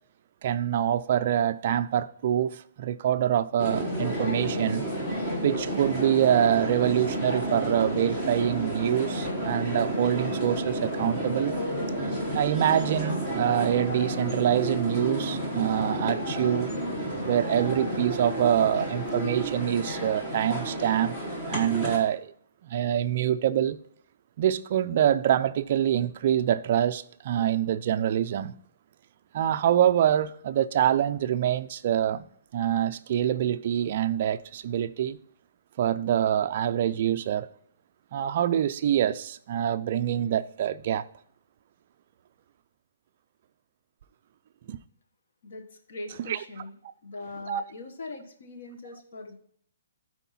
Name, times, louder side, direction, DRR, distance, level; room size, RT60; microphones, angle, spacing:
voice 1, 0.4-4.9 5.4-11.5 12.3-16.7 17.2-21.2 21.5-22.3 22.6-23.8 24.4-28.5 29.3-32.2 32.5-35.2 35.8-37.5 38.1-41.0 44.7-44.8 46.3-46.4 47.5-47.6, right 10 dB, 35° right, 0.3 m, -25 dB
sound 1, 3.6-22.0, right 1 dB, 10° left, 1.2 m, -31 dB
voice 2, 45.4-46.8 47.0-49.4, left 3 dB, 55° left, 1.3 m, -41 dB
12.0 x 4.5 x 4.2 m
hypercardioid pair, 175°, 0 cm